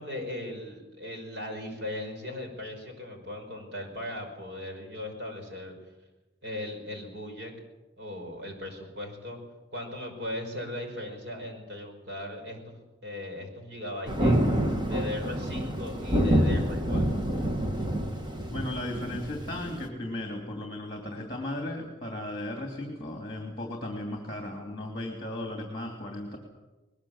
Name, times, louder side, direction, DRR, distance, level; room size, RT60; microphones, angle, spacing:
voice 1, 0.0-5.8 6.4-7.5 8.0-9.4 9.7-14.6 14.9-17.2, left 1 dB, 60° right, 4 dB, 5.4 m, -38 dB
Thunder, 14.1-19.9, equal, 25° right, 1.7 m, -27 dB
voice 2, 18.5-26.4, left 1 dB, 25° left, 2 dB, 3.0 m, -36 dB
21.0 x 20.5 x 7.5 m, 1.1 s
head